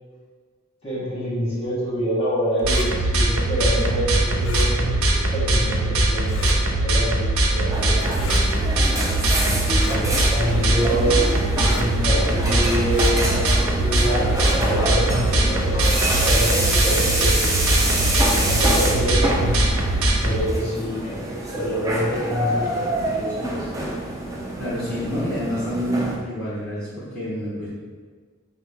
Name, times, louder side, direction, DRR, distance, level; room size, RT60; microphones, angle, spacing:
voice 1, 0.8-5.0 5.3-8.4 9.4-17.5 18.4-19.6 20.2-23.7, equal, 30° left, -7 dB, 1.1 m, -26 dB
sound 1, 2.6-2.9 4.4-4.7 6.2-6.6 8.1-8.4 9.7-10.0 11.5-11.9 12.9-13.1 14.3-14.6, left 4 dB, 60° left, 0.4 m, -35 dB
sound 2, 2.6-20.4, right 1 dB, 80° right, 0.5 m, -21 dB
sound 3, 7.7-26.2, right 1 dB, 15° right, 0.3 m, -26 dB
voice 2, 24.6-27.7, equal, 5° left, -11 dB, 0.7 m, -28 dB
5.3 x 2.0 x 3.4 m, 1.5 s
head